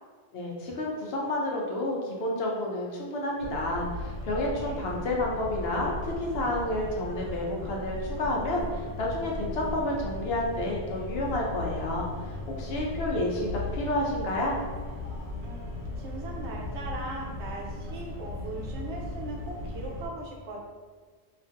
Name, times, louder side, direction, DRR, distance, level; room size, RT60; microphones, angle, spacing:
voice 1, 0.3-12.1 12.6-14.6, left 1 dB, 65° left, -2 dB, 0.8 m, -30 dB
sound 1, 3.4-20.1, left 2 dB, 80° left, 1.1 m, -37 dB
voice 2, 15.4-20.6, right 2 dB, 75° right, -2 dB, 0.9 m, -39 dB
3.0 x 2.5 x 2.5 m, 1.5 s
omnidirectional pair, 1.2 m